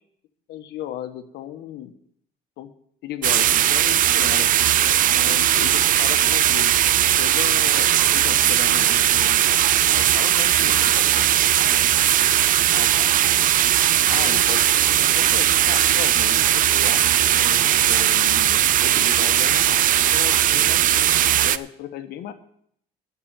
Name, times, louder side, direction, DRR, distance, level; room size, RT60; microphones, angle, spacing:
voice 1, 0.5-1.9 2.6-2.7 3.0-4.5 5.1-6.7 7.1-11.6 12.7-13.4 14.1-19.8 20.1-22.3, left 11 dB, 80° left, 9 dB, 1.3 m, -36 dB
sound 1, 3.2-21.6, right 12 dB, 55° right, 0.5 m, -18 dB
Bowed string instrument, 9.2-20.5, right 7 dB, 85° right, 1.5 m, -48 dB
12.0 x 6.1 x 8.9 m, 0.68 s
cardioid pair, 110°, 17 cm